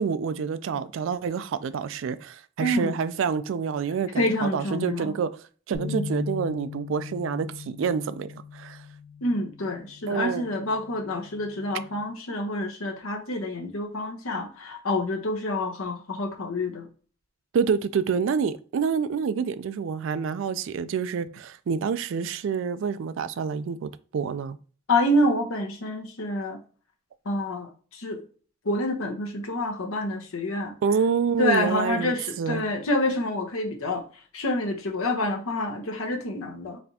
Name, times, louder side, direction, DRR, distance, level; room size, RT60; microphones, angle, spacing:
voice 1, 0.0-5.3 5.7-8.8 10.1-10.5 17.5-24.6 30.8-32.6, right 6 dB, 65° right, 0.3 m, -27 dB
voice 2, 2.6-3.0 4.2-5.2 5.9-6.1 9.2-16.9 24.9-26.6 27.2-28.2 28.6-30.7 31.4-34.0 34.3-36.8, left 1 dB, 85° left, 0.9 m, -27 dB
sound 1, 5.7-12.0, left 5 dB, 40° right, 1.3 m, -39 dB
4.2 x 3.3 x 2.8 m
head